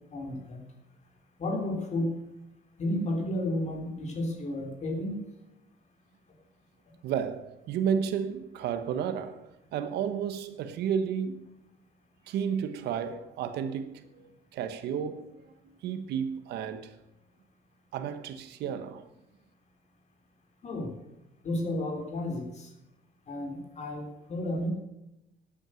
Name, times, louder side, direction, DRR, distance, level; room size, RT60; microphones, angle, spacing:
voice 1, 0.1-0.6 1.4-2.1 2.8-5.2 20.6-20.9 21.4-22.7 23.3-24.7, left 1 dB, 40° left, 3.3 m, -32 dB
voice 2, 7.0-11.5 12.3-15.4 15.8-16.9 17.9-19.1, right 7 dB, 75° right, 1.2 m, -32 dB
12.5 x 8.8 x 7.7 m
cardioid pair, 110°, 17 cm